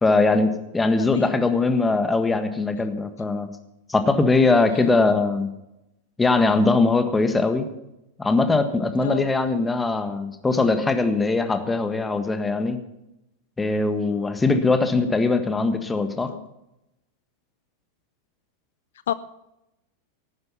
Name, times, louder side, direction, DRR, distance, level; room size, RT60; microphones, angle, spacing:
voice 1, 0.0-3.5 3.9-5.5 6.2-7.7 8.2-12.8 13.6-16.3, left 3 dB, 10° left, 8 dB, 1.5 m, -21 dB
voice 2, 1.0-1.4 4.7-5.0 9.0-9.3 16.2-16.5 19.1-19.2, left 11 dB, 60° left, 16 dB, 0.4 m, -31 dB
17.5 x 9.6 x 5.9 m, 0.90 s
figure-of-eight pair, 90°, 0 cm